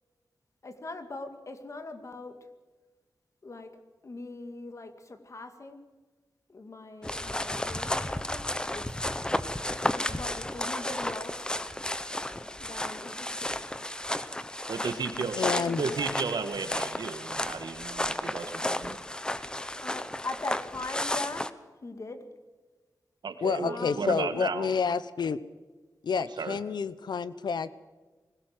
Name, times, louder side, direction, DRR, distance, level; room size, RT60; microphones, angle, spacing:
voice 1, 0.6-2.4 3.4-5.8 6.5-8.9 9.9-11.6 12.6-13.7 15.1-16.1 19.8-21.5 21.8-22.3 23.6-24.0, left 2 dB, 45° left, 8 dB, 2.1 m, -41 dB
sound 1, 7.0-21.5, left 1 dB, 10° left, 0.9 m, -33 dB
voice 2, 14.7-15.4 15.8-19.0 23.2-24.7 26.2-26.6, right 5 dB, 85° right, 8 dB, 1.9 m, -34 dB
voice 3, 15.4-15.8 23.4-25.4 26.0-27.7, left 6 dB, 90° left, 15 dB, 0.9 m, -29 dB
21.0 x 17.5 x 7.8 m, 1.3 s
wide cardioid pair, 125°, 7 cm